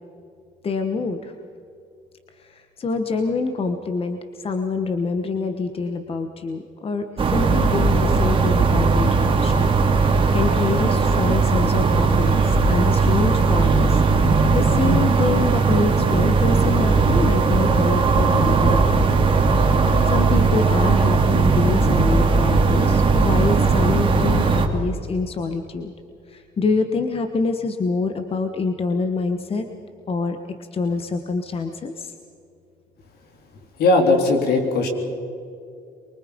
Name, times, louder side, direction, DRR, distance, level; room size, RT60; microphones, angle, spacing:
voice 1, 0.6-1.3 2.4-14.0 14.5-19.2 20.1-25.9 26.3-29.6 30.1-30.4 30.7-32.1, left 4 dB, 35° left, 7 dB, 1.4 m, -26 dB
sound 1, 7.2-24.7, right 4 dB, 30° right, 2.6 m, -18 dB
voice 2, 33.8-34.9, left 2 dB, 70° left, 4 dB, 3.7 m, -18 dB
24.5 x 23.5 x 5.3 m, 2.5 s
cardioid pair, 110°, 17 cm